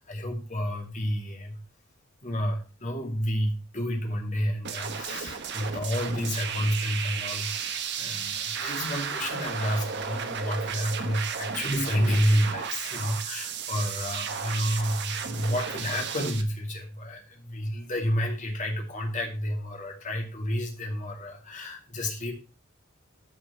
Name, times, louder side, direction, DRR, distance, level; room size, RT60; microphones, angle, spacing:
voice 1, 0.0-1.6 2.2-22.3, equal, 40° left, 2 dB, 2.6 m, -30 dB
sound 1, 4.6-16.4, right 7 dB, 55° right, 1.1 m, -34 dB
13.0 x 5.0 x 4.2 m, 0.34 s
head